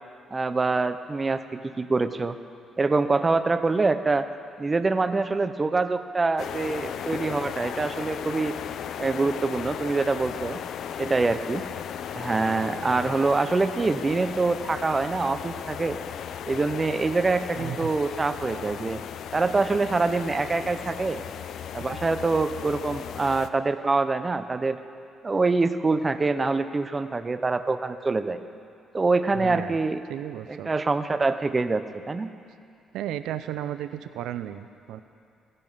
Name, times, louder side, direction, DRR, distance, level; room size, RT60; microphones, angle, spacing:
voice 1, 0.3-2.4 2.8-4.3 4.6-8.5 9.0-10.6 11.0-11.6 12.1-16.0 16.5-19.0 19.3-21.2 21.7-24.8 25.2-28.4 28.9-30.0 30.5-32.3, right 3 dB, 25° right, 11 dB, 0.6 m, -25 dB
sound 1, 6.4-23.5, left 9 dB, 70° left, 0.5 m, -36 dB
voice 2, 17.6-17.9 29.4-29.8 30.1-30.7 32.9-35.0, right 11 dB, 85° right, 12 dB, 0.4 m, -34 dB
16.0 x 10.5 x 5.5 m, 2.4 s
cardioid pair, 90°, 0 cm